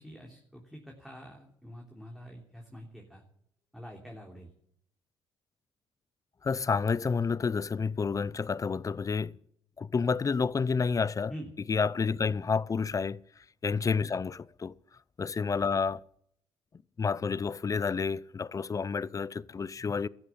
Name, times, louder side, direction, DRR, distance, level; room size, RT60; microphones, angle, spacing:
voice 1, 0.0-3.2 3.7-4.5 11.3-11.5 14.0-14.2 15.6-15.7, equal, ahead, 3.3 m, -46 dB
voice 2, 6.4-9.3 9.8-11.3 11.7-13.2 13.6-14.7 15.2-16.0 17.0-20.1, left 5 dB, 30° left, 0.6 m, -29 dB
14.0 x 10.5 x 9.2 m
supercardioid pair, 70°, 11 cm